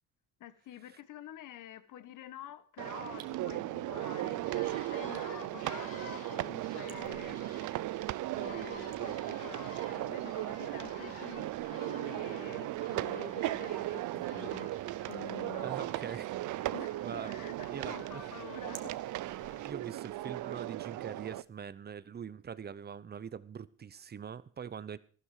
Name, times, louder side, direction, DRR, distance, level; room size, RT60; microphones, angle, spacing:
voice 1, 0.4-7.4 8.3-14.7 15.1-15.9 16.7-19.0, left 11 dB, 60° left, 1.3 m, -48 dB
sound 1, 2.8-21.4, right 16 dB, 60° right, 0.6 m, -37 dB
sound 2, 3.1-21.7, right 11 dB, 75° right, 1.8 m, -63 dB
sound 3, 4.4-19.7, left 3 dB, 40° left, 4.0 m, -53 dB
voice 2, 15.6-16.3 17.0-17.3 17.7-18.2 19.6-25.0, right 7 dB, 30° right, 0.8 m, -43 dB
14.5 x 12.5 x 5.0 m
cardioid pair, 100°, 35 cm